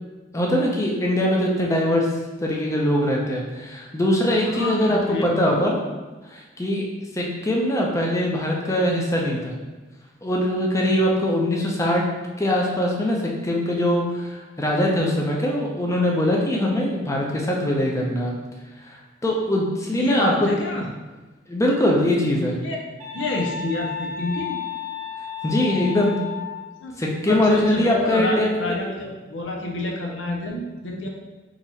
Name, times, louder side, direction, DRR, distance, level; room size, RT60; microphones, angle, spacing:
voice 1, 0.3-2.1 2.4-5.8 6.3-6.8 7.1-9.6 10.2-12.0 12.4-13.2 13.4-18.4 19.2-20.5 21.5-22.6 25.4-26.1 27.0-28.5, left 1 dB, 15° left, -1 dB, 0.7 m, -22 dB
voice 2, 4.4-5.6 19.9-20.9 22.6-22.8 23.1-24.6 26.8-27.0 27.3-31.1, left 1 dB, 70° left, 0 dB, 0.6 m, -28 dB
sound 1, 23.0-26.6, left 7 dB, 45° right, 0.8 m, -32 dB
3.9 x 3.0 x 4.1 m, 1.2 s
head